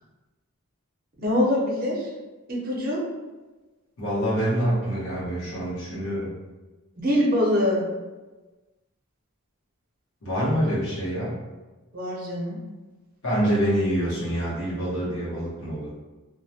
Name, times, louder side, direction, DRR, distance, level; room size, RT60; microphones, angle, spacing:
voice 1, 1.2-2.1 2.5-3.0 7.0-7.9 11.9-12.6, left 1 dB, 40° right, -3 dB, 0.6 m, -24 dB
voice 2, 4.0-6.3 10.2-11.4 13.2-15.9, equal, 65° left, -9 dB, 0.8 m, -26 dB
2.2 x 2.1 x 2.7 m, 1.2 s
head